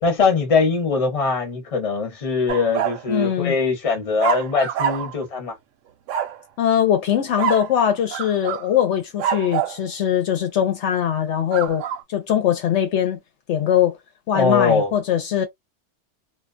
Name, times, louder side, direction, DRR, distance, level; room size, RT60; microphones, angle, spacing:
voice 1, 0.0-5.5 14.3-14.9, left 4 dB, 30° left, 0.9 m, -21 dB
sound 1, 2.5-3.0 4.2-5.2 6.1-6.4 7.4-7.7 8.1-8.7 9.2-9.8 11.5-12.0, right 9 dB, 85° right, 0.9 m, -25 dB
voice 2, 3.1-3.5 6.6-11.8 12.1-13.2 13.5-14.0 14.3-15.5, left 10 dB, 70° left, 0.9 m, -21 dB
2.3 x 2.2 x 2.4 m
omnidirectional pair, 1.3 m